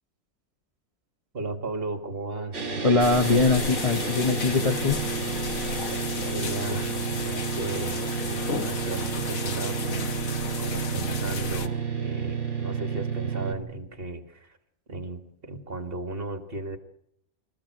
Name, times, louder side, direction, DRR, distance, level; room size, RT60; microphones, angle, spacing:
voice 1, 1.3-2.7 5.9-14.6 14.9-16.8, right 2 dB, 45° right, 8 dB, 2.3 m, -36 dB
sound 1, 2.5-13.5, right 5 dB, 60° right, 2.6 m, -31 dB
voice 2, 2.8-5.0, left 3 dB, 30° left, 5 dB, 0.9 m, -22 dB
sound 2, 3.0-11.7, left 5 dB, 75° left, 1.5 m, -34 dB
25.5 x 15.0 x 7.9 m, 0.76 s
omnidirectional pair, 1.4 m